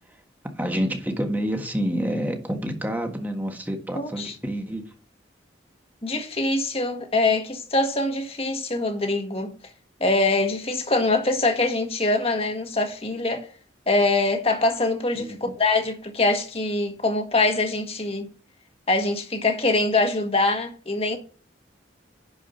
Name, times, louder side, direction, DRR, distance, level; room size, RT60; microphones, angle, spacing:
voice 1, 0.6-4.8 15.1-15.5, equal, 10° right, 1.5 m, -28 dB
voice 2, 3.9-4.3 6.0-9.5 10.0-13.5 13.9-18.3 18.9-21.2, left 2 dB, 30° left, 1.6 m, -23 dB
11.0 x 5.0 x 5.6 m
head